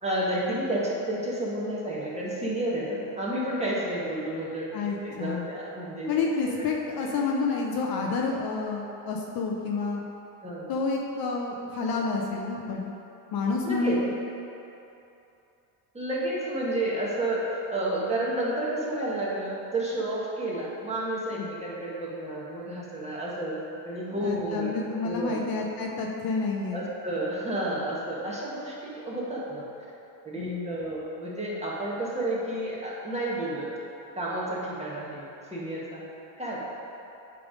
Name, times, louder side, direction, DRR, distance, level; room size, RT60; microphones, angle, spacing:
voice 1, 0.0-4.7 5.0-6.1 6.5-6.6 10.4-10.7 13.6-14.0 15.9-17.4 17.7-23.6 23.8-25.7 26.7-29.7 30.2-33.7 34.1-36.0 36.4-36.6, right 1 dB, 15° right, -6 dB, 1.5 m, -31 dB
voice 2, 4.7-5.5 6.1-10.0 10.7-12.9 13.3-14.1 21.4-21.5 24.1-26.9 30.4-30.8, left 4 dB, 50° left, 0 dB, 0.8 m, -29 dB
8.2 x 3.5 x 5.1 m, 2.9 s
cardioid pair, 110°, 48 cm